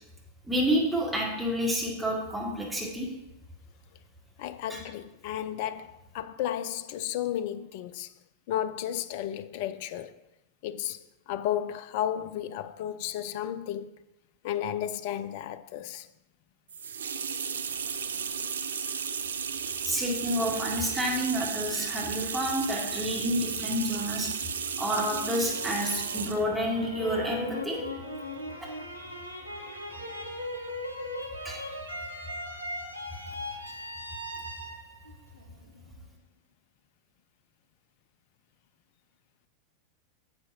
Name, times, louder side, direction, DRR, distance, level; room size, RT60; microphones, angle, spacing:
voice 1, 0.5-3.1 4.7-4.8 19.9-24.3 24.8-27.8 31.4-31.6, equal, 5° right, 2.1 m, -29 dB
voice 2, 4.4-8.1 8.5-10.1 10.6-13.9 14.4-16.1, left 11 dB, 50° left, 0.4 m, -33 dB
sound 1, 16.7-26.5, right 6 dB, 70° right, 0.4 m, -34 dB
sound 2, 24.9-36.0, left 1 dB, 85° right, 0.9 m, -39 dB
10.5 x 7.4 x 2.7 m
figure-of-eight pair, 90°, 0 cm